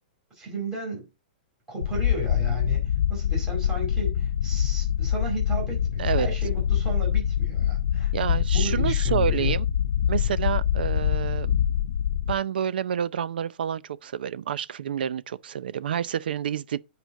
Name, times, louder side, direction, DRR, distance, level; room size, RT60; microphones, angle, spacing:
voice 1, 0.3-1.1 1.7-9.6, right 2 dB, 10° right, 5.1 m, -35 dB
sound 1, 1.8-12.3, left 9 dB, 75° left, 0.7 m, -24 dB
voice 2, 8.1-9.7 10.1-11.6 12.3-16.8, right 9 dB, 65° right, 0.6 m, -28 dB
9.3 x 5.0 x 3.7 m
hypercardioid pair, 175°, 5 cm